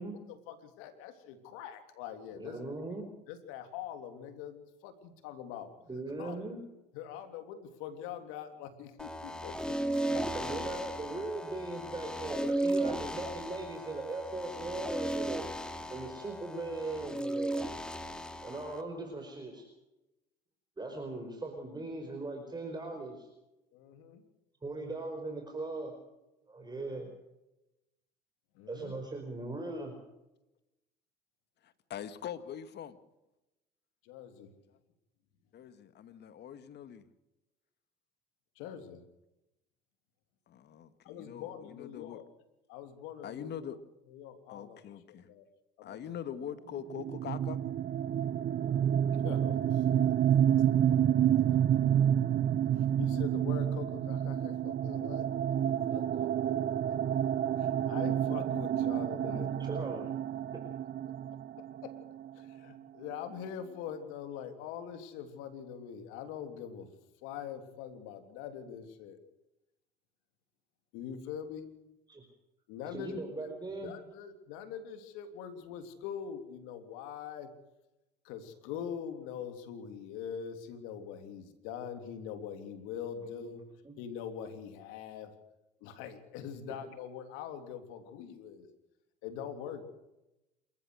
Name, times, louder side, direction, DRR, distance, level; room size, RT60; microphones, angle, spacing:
voice 1, 0.0-2.6 3.3-6.5 6.9-9.8 10.1-10.2 10.5-10.6 13.2-13.3 16.0-16.1 17.9-18.1 23.7-24.2 26.6-27.1 28.5-29.0 34.0-34.5 38.5-39.0 41.0-42.3 42.7-43.7 44.0-45.5 45.8-46.1 49.2-50.3 51.5-51.8 52.7-55.3 55.9-56.5 56.9-57.0 57.6-59.8 61.8-61.9 62.3-66.9 67.2-69.2 70.9-71.7 72.7-73.5 73.8-77.5 78.2-83.6 84.0-85.3 85.8-88.7 89.2-89.8, left 8 dB, 80° left, 8 dB, 3.4 m, -43 dB
voice 2, 2.3-3.0 5.9-6.6 10.3-15.4 15.9-17.7 18.4-19.6 20.8-23.3 24.6-26.0 26.5-27.1 28.7-29.9 59.0-60.1 60.5-60.6 72.1-72.2 72.9-73.9 83.2-83.4 83.8-84.0, right 2 dB, 20° right, 3 dB, 5.1 m, -39 dB
sound 1, 9.0-18.8, right 1 dB, 5° left, 2.7 m, -35 dB
voice 3, 31.6-33.0 35.5-37.0 40.5-42.2 43.2-43.8 44.5-45.3 45.8-47.6, left 9 dB, 55° left, 12 dB, 2.1 m, -43 dB
sound 2, 46.9-62.5, right 10 dB, 50° right, 1.0 m, -29 dB
28.0 x 14.5 x 6.6 m, 0.95 s
supercardioid pair, 75°, 21 cm